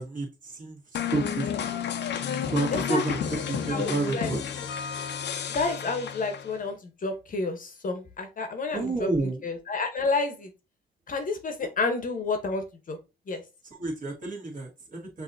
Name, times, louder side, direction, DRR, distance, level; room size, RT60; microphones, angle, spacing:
voice 1, 0.0-1.9 2.5-3.2 3.5-4.4 8.7-9.4 13.8-15.2, right 3 dB, 40° right, -2 dB, 1.8 m, -30 dB
sound 1, 0.9-6.6, left 8 dB, 60° left, 0.7 m, -31 dB
voice 2, 2.7-3.0 3.7-4.3 5.5-9.1 9.4-10.5 11.1-13.0 13.3-13.4, left 3 dB, 45° left, 7 dB, 1.0 m, -30 dB
5.9 x 2.8 x 2.6 m, 0.28 s
cardioid pair, 90°, 20 cm